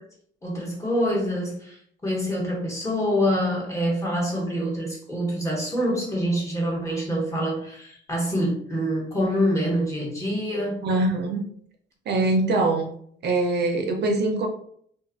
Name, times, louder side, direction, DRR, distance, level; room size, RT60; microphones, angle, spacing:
voice 1, 0.4-10.8, equal, 15° left, -3 dB, 1.1 m, -26 dB
voice 2, 10.8-11.5 12.1-12.9 13.2-14.5, right 2 dB, 60° right, 3 dB, 0.5 m, -23 dB
2.5 x 2.4 x 2.5 m, 0.63 s
cardioid pair, 90°, 20 cm